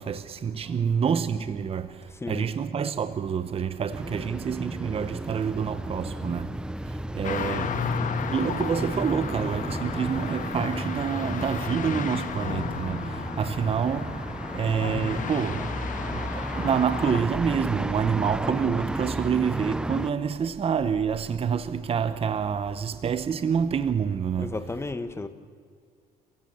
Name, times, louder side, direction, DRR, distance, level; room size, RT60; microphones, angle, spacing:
voice 1, 0.0-7.8 8.3-14.3 14.5-15.7 16.1-24.6, right 7 dB, 35° right, 0.9 m, -27 dB
sound 1, 3.9-20.1, right 1 dB, 5° right, 0.6 m, -33 dB
sound 2, 7.2-17.2, left 7 dB, 50° left, 1.5 m, -34 dB
voice 2, 24.4-25.3, left 3 dB, 15° left, 1.4 m, -33 dB
28.5 x 16.0 x 7.0 m
cardioid pair, 110°, 17 cm